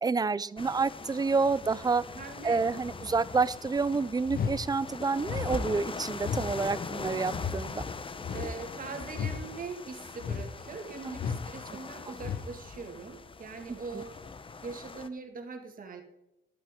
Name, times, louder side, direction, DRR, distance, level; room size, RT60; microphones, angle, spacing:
voice 1, 0.0-2.0 2.4-7.8 11.1-11.2 13.7-14.0, right 4 dB, 20° right, 18 dB, 0.4 m, -29 dB
sound 1, 0.6-15.1, left 4 dB, 25° left, 0.8 m, -41 dB
voice 2, 2.1-2.6 8.3-14.2 14.6-16.0, right 4 dB, 45° right, 5 dB, 2.0 m, -42 dB
sound 2, 4.3-4.6 5.2-5.5 6.2-6.5 7.3-7.6 8.2-8.6 9.1-9.4 10.2-10.5 11.1-11.5 12.2-12.5, left 7 dB, 50° left, 0.9 m, -33 dB
12.0 x 11.5 x 3.7 m, 0.92 s
cardioid pair, 90°, 20 cm